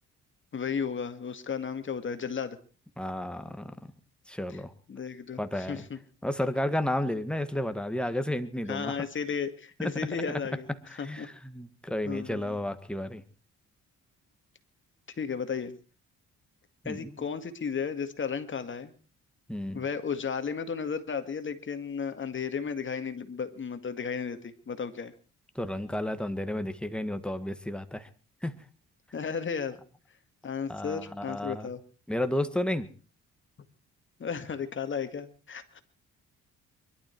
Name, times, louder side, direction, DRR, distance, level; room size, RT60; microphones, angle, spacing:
voice 1, 0.5-2.6 4.5-4.6 4.9-6.0 8.7-10.7 11.0-11.3 12.0-12.6 15.2-15.8 16.8-18.9 19.7-25.1 29.1-29.8 30.4-31.8 34.2-35.8, left 6 dB, 40° left, 9 dB, 2.1 m, -34 dB
voice 2, 3.0-3.9 4.3-4.7 5.4-5.8 6.2-8.9 9.8-9.9 10.3-10.4 10.9-13.2 16.8-17.1 19.5-19.8 25.5-28.1 28.4-28.5 30.7-31.7 32.1-32.9, left 1 dB, 5° left, 9 dB, 1.7 m, -32 dB
23.0 x 12.0 x 4.7 m, 0.39 s
cardioid pair, 90°, 30 cm